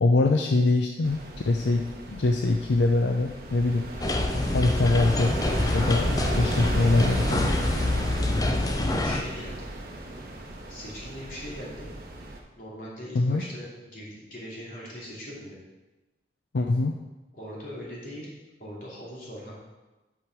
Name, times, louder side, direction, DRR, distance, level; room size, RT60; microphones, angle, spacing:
voice 1, 0.0-1.2 1.5-3.9 4.4-5.4 5.7-7.5 13.1-13.4 16.5-17.0, left 2 dB, 80° left, 4 dB, 0.5 m, -23 dB
sound 1, 1.0-12.4, right 1 dB, 55° right, 1.0 m, -35 dB
sound 2, 4.0-9.2, left 2 dB, 20° left, 0.5 m, -26 dB
voice 2, 9.0-9.7 10.7-11.9 12.5-15.6 17.3-18.3 18.6-19.5, equal, 50° left, -6 dB, 2.8 m, -40 dB
8.7 x 5.2 x 4.6 m, 1.1 s
head